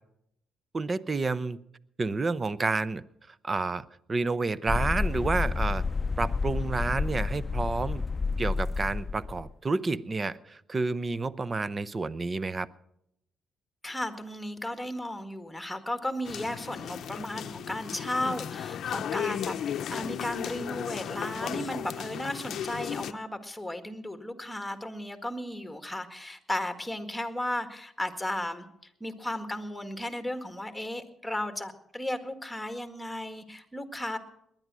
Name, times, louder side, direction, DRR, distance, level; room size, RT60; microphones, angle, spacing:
voice 1, 0.7-1.6 2.0-3.0 3.4-5.8 6.2-8.0 8.4-12.7, right 3 dB, 30° right, 18 dB, 0.6 m, -30 dB
sound 1, 4.7-9.5, left 4 dB, 25° left, 0.6 m, -30 dB
voice 2, 13.8-28.7 29.0-34.2, left 1 dB, 5° left, 8 dB, 1.8 m, -35 dB
sound 2, 16.3-23.1, left 9 dB, 70° left, 0.6 m, -35 dB
19.5 x 10.5 x 6.2 m, 0.77 s
cardioid pair, 90°, 0 cm